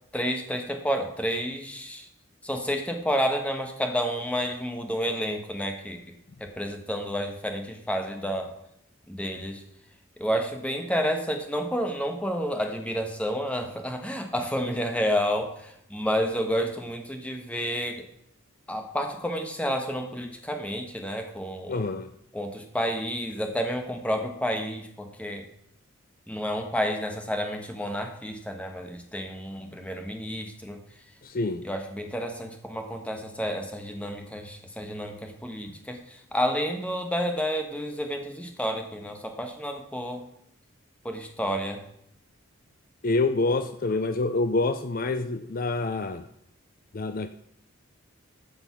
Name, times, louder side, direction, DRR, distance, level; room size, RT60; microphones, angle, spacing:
voice 1, 0.1-2.1 2.4-6.0 6.4-8.5 9.1-9.6 10.2-18.1 18.7-21.9 22.3-25.5 26.3-30.8 31.6-40.3 41.0-41.8, equal, 5° left, 1.2 m, -30 dB
voice 2, 21.7-22.1 31.2-31.6 43.0-46.2 46.9-47.3, left 3 dB, 40° left, 0.5 m, -27 dB
14.0 x 5.3 x 5.9 m
head